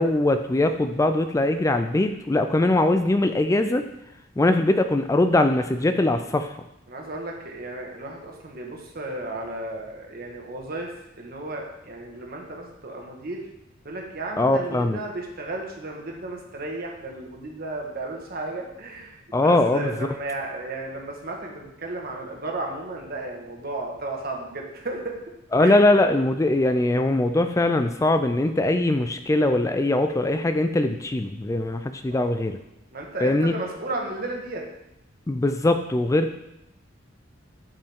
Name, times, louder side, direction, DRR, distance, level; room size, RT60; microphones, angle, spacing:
voice 1, 0.0-3.8 4.4-6.5 14.4-15.0 19.3-19.9 25.5-32.6 33.2-33.5 35.3-36.4, left 2 dB, 15° left, 8 dB, 0.3 m, -21 dB
voice 2, 6.9-13.5 13.8-25.1 25.6-25.8 32.1-32.4 32.9-34.6, right 2 dB, 50° right, 0 dB, 1.5 m, -34 dB
12.0 x 5.4 x 3.6 m, 0.86 s
head